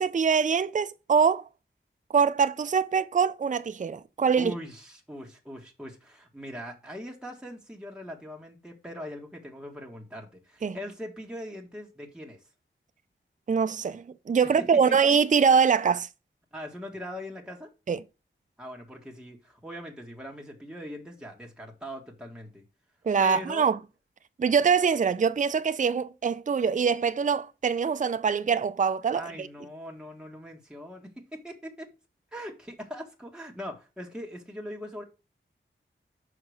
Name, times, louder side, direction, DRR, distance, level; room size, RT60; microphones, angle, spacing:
voice 1, 0.0-1.5 2.1-4.5 10.6-10.8 13.5-16.1 17.9-18.0 23.1-23.8 24.4-29.5, right 6 dB, 40° right, 0.5 m, -24 dB
voice 2, 4.3-12.4 14.6-15.0 16.5-17.7 18.6-22.6 23.2-23.7 29.1-31.9 32.3-35.0, equal, 5° right, 1.6 m, -41 dB
5.8 x 4.9 x 6.4 m
wide cardioid pair, 90°, 21 cm